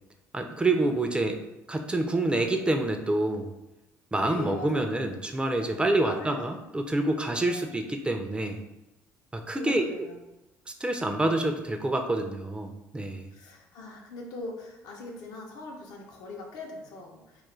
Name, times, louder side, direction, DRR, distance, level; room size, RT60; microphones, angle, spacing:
voice 1, 0.3-1.4 1.7-3.5 4.1-8.6 9.3-9.8 10.8-13.3, right 2 dB, 15° right, 5 dB, 0.3 m, -27 dB
voice 2, 4.2-5.1 6.0-6.6 7.5-7.8 9.5-10.2 13.3-17.4, left 2 dB, 75° left, 0 dB, 0.6 m, -41 dB
2.3 x 2.0 x 3.0 m, 0.93 s
supercardioid pair, 70°, 7 cm